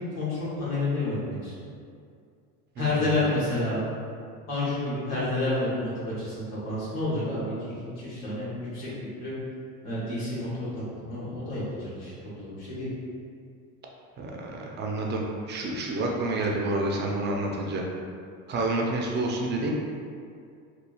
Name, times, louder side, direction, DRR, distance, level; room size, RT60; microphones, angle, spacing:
voice 1, 0.2-1.5 2.8-3.8 4.5-5.9 6.2-9.3 9.8-12.9, left 2 dB, 90° left, -8 dB, 1.2 m, -30 dB
voice 2, 2.8-3.2 14.2-15.2 15.5-17.8 18.5-19.7, right 2 dB, 25° right, -1 dB, 0.3 m, -29 dB
3.0 x 2.3 x 2.3 m, 2.3 s
supercardioid pair, 95°, 44 cm